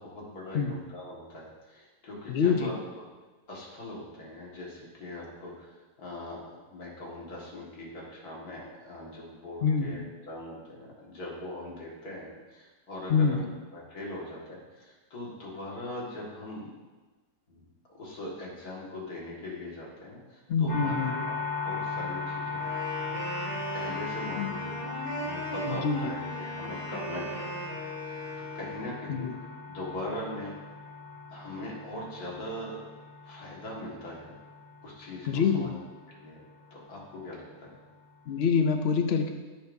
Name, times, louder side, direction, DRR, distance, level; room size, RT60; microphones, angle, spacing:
voice 1, 0.0-3.1 3.5-16.7 17.5-17.6 17.9-21.0 21.3-23.0 23.7-27.7 28.0-28.2 28.5-29.3 29.7-30.6 31.3-32.8 33.2-34.3 34.8-35.7 36.2-36.4 36.7-37.8, left 1 dB, 65° left, -4 dB, 2.4 m, -41 dB
voice 2, 2.3-2.7 9.6-10.0 13.1-13.4 20.5-21.1 24.4-24.5 25.7-26.0 29.1-29.4 35.3-35.7 38.3-39.3, left 6 dB, 85° left, 6 dB, 0.5 m, -25 dB
sound 1, 20.7-38.4, left 4 dB, 30° left, 1.7 m, -39 dB
Wind instrument woodwind instrument, 22.6-28.8, right 1 dB, 85° right, 2.4 m, -38 dB
14.5 x 5.2 x 2.7 m, 1.3 s
omnidirectional pair, 1.8 m